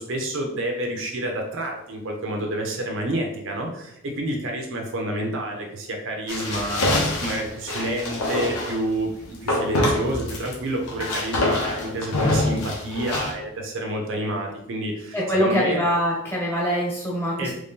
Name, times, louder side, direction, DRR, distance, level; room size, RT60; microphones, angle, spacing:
voice 1, 0.0-15.8 17.4-17.5, right 1 dB, 60° right, 2 dB, 0.6 m, -29 dB
sound 1, 6.3-8.8 9.5-10.5 10.8-13.3, left 1 dB, 85° left, 0.9 m, -25 dB
voice 2, 15.1-17.5, equal, 10° left, -5 dB, 1.2 m, -23 dB
3.2 x 2.7 x 3.6 m, 0.78 s
head